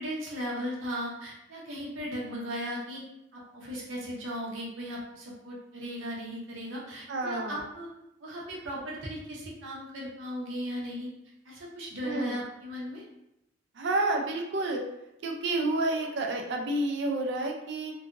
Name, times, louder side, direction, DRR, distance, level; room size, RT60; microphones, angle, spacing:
voice 1, 0.0-3.1 3.3-7.9 8.2-11.1 11.4-13.0, equal, 75° right, -4 dB, 0.8 m, -37 dB
voice 2, 7.1-7.6 12.0-12.3 13.8-14.8 15.2-17.9, right 2 dB, 60° right, 2 dB, 0.4 m, -29 dB
2.7 x 2.5 x 2.5 m, 0.85 s
head